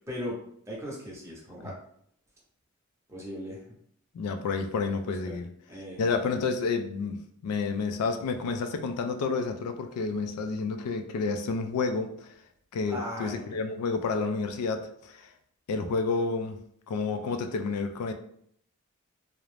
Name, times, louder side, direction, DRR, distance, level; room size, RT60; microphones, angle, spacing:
voice 1, 0.1-0.4 0.7-1.7 3.1-3.6 5.2-5.3 5.7-6.2 12.9-13.6, left 1 dB, 15° right, -4 dB, 0.6 m, -38 dB
voice 2, 4.1-5.5 6.0-12.3 12.7-15.3 15.7-16.6 16.9-18.1, left 4 dB, 90° left, 7 dB, 0.3 m, -30 dB
2.4 x 2.0 x 3.1 m, 0.68 s
head